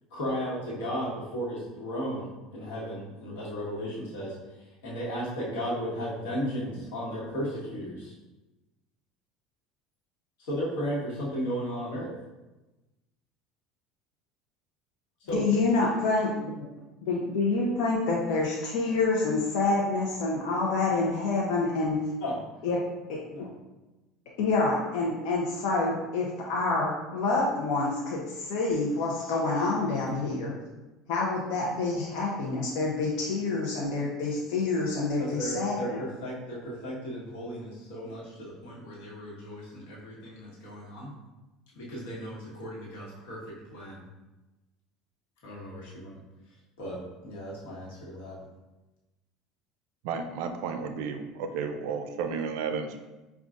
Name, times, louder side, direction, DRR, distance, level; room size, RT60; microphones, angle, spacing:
voice 1, 0.1-4.3 4.8-8.1 10.4-12.1 15.2-15.4 22.2-22.4 23.3-23.5 35.2-41.1 41.7-44.0 45.4-46.2 46.8-48.4, equal, 90° left, -5 dB, 1.3 m, -35 dB
voice 2, 15.3-16.3 16.6-16.7 17.0-22.0 22.6-22.8 23.1-23.2 24.4-30.5 31.1-36.0, left 3 dB, 75° left, -3 dB, 0.6 m, -27 dB
voice 3, 50.0-53.0, right 5 dB, 75° right, 7 dB, 0.4 m, -32 dB
5.2 x 2.4 x 2.4 m, 1.1 s
cardioid pair, 130°, 0 cm